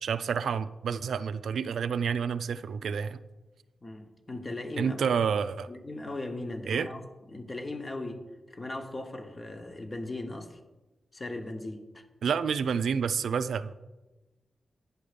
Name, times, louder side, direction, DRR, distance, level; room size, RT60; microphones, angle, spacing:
voice 1, 0.0-3.2 4.8-5.7 6.7-6.9 12.2-13.7, right 6 dB, 85° right, 13 dB, 0.3 m, -29 dB
voice 2, 3.8-5.1 5.7-7.0 7.3-8.2 8.5-10.6 11.1-12.0, left 2 dB, 30° left, 5 dB, 1.0 m, -38 dB
9.7 x 5.4 x 5.0 m, 1.1 s
wide cardioid pair, 95°, 0 cm